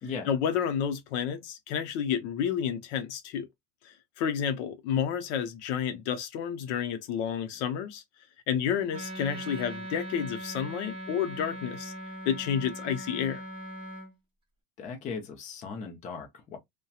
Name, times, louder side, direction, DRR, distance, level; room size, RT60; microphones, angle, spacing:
voice 1, 0.3-3.5 3.8-8.0 8.5-11.9 12.3-13.4, left 8 dB, 65° left, 0.7 m, -30 dB
Wind instrument woodwind instrument, 8.9-14.1, right 1 dB, 15° right, 0.8 m, -40 dB
voice 2, 14.8-16.6, left 5 dB, 20° left, 0.5 m, -38 dB
2.8 x 2.2 x 2.3 m
supercardioid pair, 145°, 38 cm